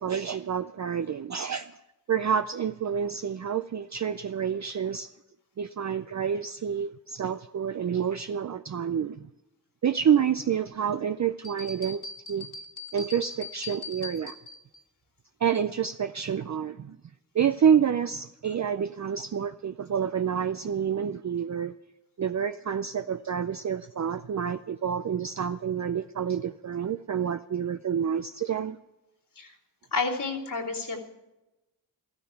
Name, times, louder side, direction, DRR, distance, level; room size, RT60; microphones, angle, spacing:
voice 1, 0.0-1.7 2.1-5.1 5.6-9.3 9.8-12.0 12.3-12.5 12.9-14.4 15.4-17.0 17.3-21.7 22.2-28.8, right 8 dB, 40° right, 0.5 m, -28 dB
sound 1, 11.4-14.8, left 3 dB, 45° left, 2.1 m, -40 dB
voice 2, 29.9-31.1, left 4 dB, 65° left, 3.2 m, -30 dB
14.0 x 13.0 x 5.8 m
wide cardioid pair, 70°, 42 cm